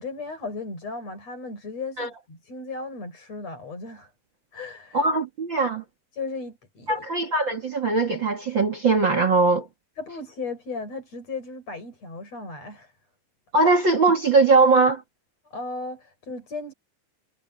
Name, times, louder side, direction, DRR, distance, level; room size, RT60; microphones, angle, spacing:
voice 1, 0.0-4.1 4.5-5.1 6.1-6.9 10.0-12.9 15.4-16.7, left 3 dB, 35° left, 8.0 m, -36 dB
voice 2, 4.9-5.8 6.9-9.7 13.5-15.0, right 3 dB, 45° right, 1.5 m, -20 dB
omnidirectional pair, 5.0 m